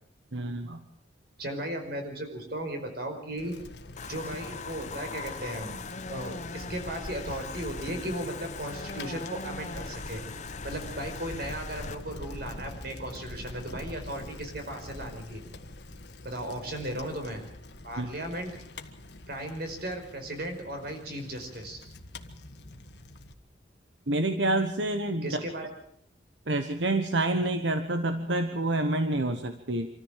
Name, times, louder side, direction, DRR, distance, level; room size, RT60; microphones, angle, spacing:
voice 1, 0.3-0.8 18.0-18.1 24.1-25.3 26.5-29.9, right 2 dB, 85° right, 7 dB, 1.3 m, -28 dB
voice 2, 1.4-3.5 4.1-5.8 6.1-10.2 10.6-15.4 16.2-17.4 17.8-18.5 19.3-21.8 25.2-25.7, right 1 dB, 60° right, 5 dB, 5.0 m, -36 dB
Bicycle, 3.4-23.3, left 2 dB, 65° left, 1.6 m, -44 dB
sound 1, 4.0-11.9, left 4 dB, 40° left, 1.1 m, -40 dB
26.0 x 14.0 x 7.4 m, 0.68 s
head